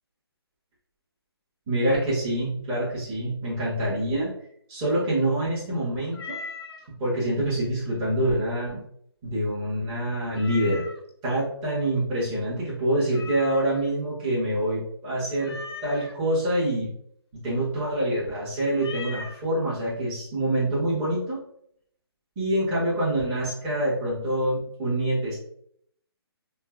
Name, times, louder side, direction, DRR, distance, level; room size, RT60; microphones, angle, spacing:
voice 1, 1.7-4.3 4.7-6.4 7.0-8.8 9.2-10.8 11.2-15.6 15.8-16.9 17.4-21.4 22.3-25.4, right 1 dB, 20° right, -9 dB, 1.4 m, -26 dB
Meow, 6.1-6.9 10.3-11.1 13.1-13.9 15.4-16.1 18.8-19.4, left 4 dB, 70° left, 0.6 m, -39 dB
4.2 x 2.2 x 2.4 m, 0.68 s
hypercardioid pair, 155°, 14 cm